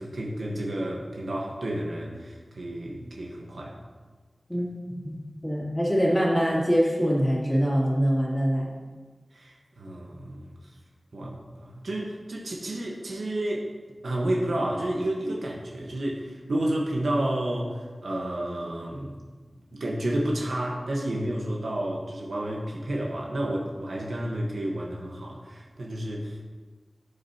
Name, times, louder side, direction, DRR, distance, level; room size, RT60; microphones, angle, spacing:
voice 1, 0.0-3.8 9.3-10.8 11.1-13.7 14.0-19.2 19.7-26.4, right 1 dB, 90° right, -2 dB, 1.1 m, -31 dB
voice 2, 5.0-8.7, equal, 10° left, -5 dB, 2.5 m, -24 dB
12.5 x 6.8 x 2.8 m, 1.4 s
wide cardioid pair, 70°, 0 cm